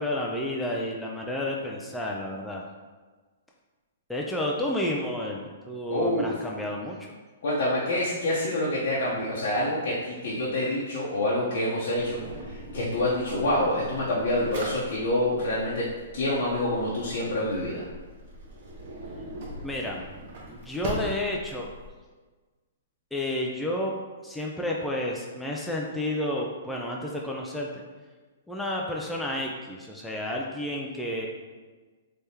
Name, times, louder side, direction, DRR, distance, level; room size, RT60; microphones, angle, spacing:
voice 1, 0.0-2.6 4.1-7.0 19.6-20.0 20.5-21.7 23.1-23.9 24.2-27.8 28.5-31.3, left 1 dB, 5° left, -2 dB, 0.3 m, -31 dB
voice 2, 5.9-6.3 7.4-15.9 16.1-17.8, left 1 dB, 65° left, -7 dB, 0.8 m, -27 dB
Drawer open or close, 12.0-21.9, right 1 dB, 55° right, 0.9 m, -41 dB
3.4 x 3.3 x 2.8 m, 1.3 s
hypercardioid pair, 145°, 0 cm